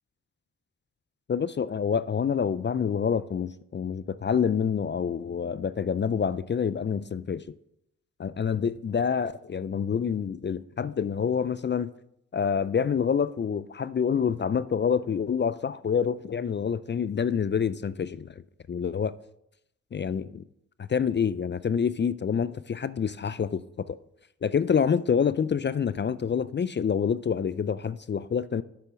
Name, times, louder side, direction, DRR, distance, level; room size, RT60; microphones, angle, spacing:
voice 1, 1.3-7.6 8.2-11.9 12.3-18.3 18.7-19.1 19.9-20.4 20.8-24.0 24.4-28.6, left 7 dB, 35° left, 0.4 m, -27 dB
7.0 x 6.7 x 5.8 m
supercardioid pair, 40°, 33 cm